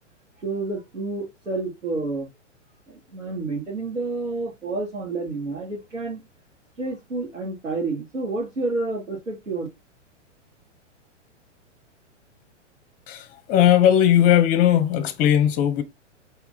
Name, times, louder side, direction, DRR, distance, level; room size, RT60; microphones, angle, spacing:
voice 1, 0.4-2.3 2.9-6.2 6.8-9.7, right 3 dB, 90° right, 1.7 m, -29 dB
voice 2, 13.1-15.8, left 10 dB, 20° left, 0.7 m, -18 dB
4.7 x 3.3 x 2.5 m
figure-of-eight pair, 115°, 37 cm